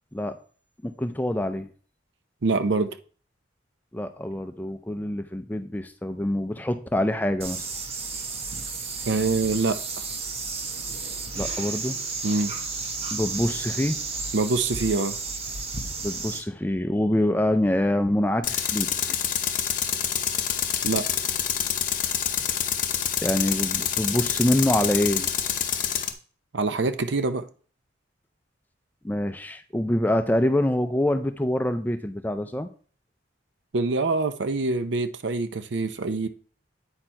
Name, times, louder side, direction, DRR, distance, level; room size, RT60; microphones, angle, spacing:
voice 1, 0.8-1.7 3.9-7.7 11.4-12.0 13.1-14.0 16.0-18.9 23.2-25.3 29.0-32.7, left 1 dB, 10° left, 0.4 m, -25 dB
voice 2, 2.4-2.9 9.1-10.0 12.2-12.5 14.3-15.2 20.8-21.1 26.5-27.4 33.7-36.3, right 3 dB, 65° right, 0.6 m, -25 dB
sound 1, 7.4-16.4, right 4 dB, 30° right, 0.9 m, -32 dB
Tools, 18.4-26.1, left 9 dB, 45° left, 0.7 m, -27 dB
8.7 x 4.4 x 4.5 m
head